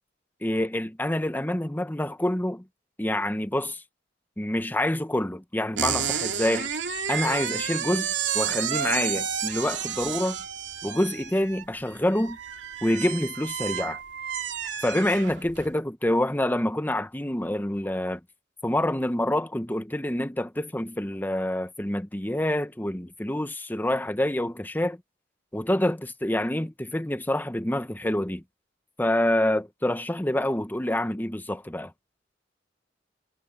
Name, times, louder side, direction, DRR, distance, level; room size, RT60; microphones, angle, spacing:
voice 1, 0.4-2.6 3.0-3.8 4.4-6.7 7.1-8.1 8.3-10.4 10.8-12.4 12.8-14.0 14.8-18.2 18.6-25.0 25.5-28.4 29.0-31.9, left 1 dB, 10° left, 1.0 m, -27 dB
sound 1, 5.8-15.7, right 8 dB, 80° right, 2.6 m, -31 dB
head